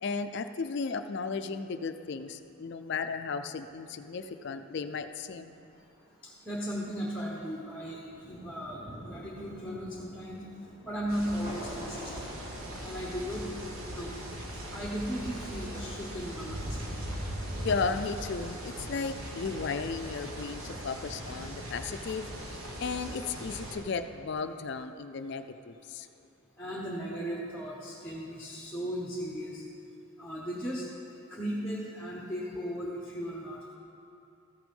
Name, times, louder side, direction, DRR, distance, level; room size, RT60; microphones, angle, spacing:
voice 1, 0.0-5.5 17.6-26.1, left 4 dB, 50° left, 9 dB, 0.4 m, -35 dB
Thunder, 5.5-21.7, equal, 50° right, 2.7 m, -51 dB
voice 2, 6.2-10.4 10.8-12.3 12.8-13.5 13.8-14.1 14.7-16.9 26.6-29.6 30.2-30.9 31.3-33.7, equal, 5° left, -4 dB, 0.9 m, -36 dB
sound 1, 11.1-23.8, right 1 dB, 75° right, 1.4 m, -39 dB
14.0 x 6.1 x 5.3 m, 2.7 s
head